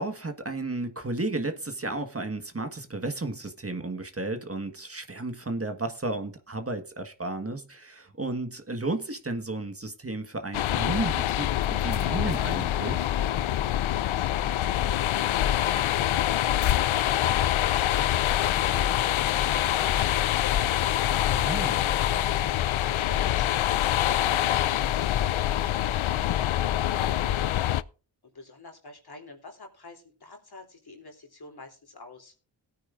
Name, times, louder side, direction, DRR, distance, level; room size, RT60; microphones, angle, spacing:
voice 1, 0.0-13.1 21.4-21.8, right 2 dB, 30° right, 1.6 m, -33 dB
sound 1, 10.5-27.8, left 12 dB, 85° left, 0.6 m, -25 dB
voice 2, 21.8-25.2 25.5-27.4 28.2-32.3, left 3 dB, 55° left, 3.4 m, -47 dB
17.5 x 9.5 x 2.6 m
cardioid pair, 50°, 46 cm